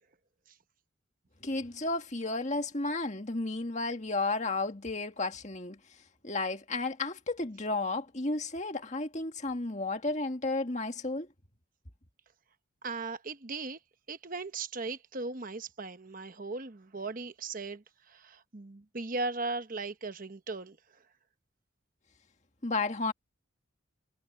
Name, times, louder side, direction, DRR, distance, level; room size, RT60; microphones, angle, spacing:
voice 1, 1.4-5.8 6.2-11.3 22.6-23.1, left 3 dB, 35° left, 1.9 m, -32 dB
voice 2, 12.8-13.8 14.1-20.8, right 3 dB, 40° right, 1.0 m, -38 dB
head